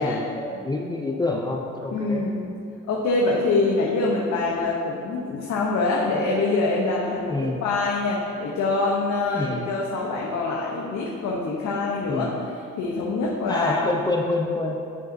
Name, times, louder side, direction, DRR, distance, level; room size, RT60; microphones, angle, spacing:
voice 1, 0.0-2.2 7.3-7.6 9.3-9.8 12.1-12.4 13.5-14.8, left 2 dB, 15° left, 0 dB, 0.4 m, -27 dB
voice 2, 1.9-2.5 2.9-7.3 7.6-12.3 12.8-13.7, left 3 dB, 70° left, -3 dB, 0.8 m, -24 dB
9.5 x 5.0 x 2.6 m, 2.6 s
cardioid pair, 90°, 30 cm